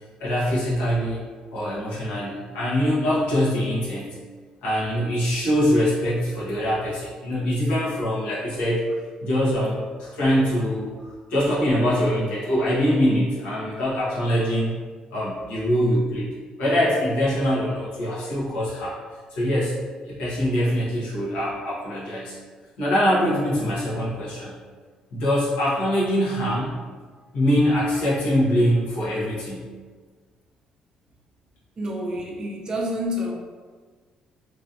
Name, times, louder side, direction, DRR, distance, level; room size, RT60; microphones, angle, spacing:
voice 1, 0.2-1.2 1.5-4.2 4.6-8.8 9.2-14.7 15.1-16.3 16.6-19.0 19.3-19.8 20.0-22.4 22.8-24.6 25.1-26.8 27.3-29.7, equal, 90° left, -8 dB, 0.9 m, -23 dB
voice 2, 31.8-33.3, equal, 35° right, -1 dB, 0.6 m, -28 dB
3.0 x 2.4 x 2.6 m, 1.5 s
cardioid pair, 100°, 2 cm